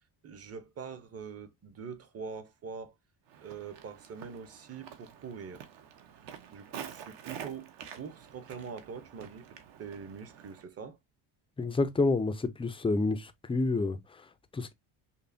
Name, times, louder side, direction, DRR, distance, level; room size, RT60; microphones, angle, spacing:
voice 1, 0.2-2.9 3.4-5.6 6.5-9.5 9.8-11.0, right 6 dB, 35° right, 0.7 m, -43 dB
Walk footsteps, 3.3-10.6, right 8 dB, 65° right, 0.9 m, -48 dB
voice 2, 11.6-14.7, left 3 dB, 15° left, 0.3 m, -29 dB
5.4 x 2.1 x 2.5 m
cardioid pair, 125°, 45 cm